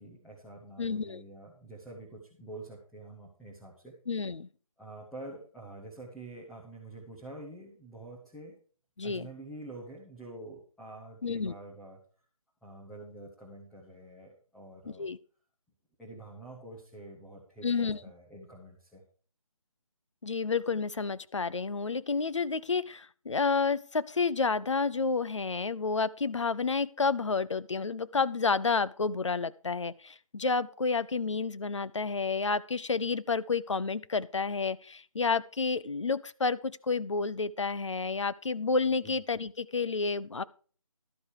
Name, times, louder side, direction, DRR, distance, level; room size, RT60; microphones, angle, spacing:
voice 1, 0.0-3.9 4.8-8.6 9.0-12.0 12.6-15.1 16.0-19.0 39.0-39.2, right 2 dB, ahead, -6 dB, 0.6 m, -47 dB
voice 2, 0.8-1.2 4.1-4.5 9.0-9.3 11.2-11.5 14.9-15.2 17.6-18.0 20.2-40.4, left 4 dB, 60° left, 16 dB, 0.6 m, -30 dB
12.0 x 8.1 x 4.7 m, 0.41 s
figure-of-eight pair, 155°, 18 cm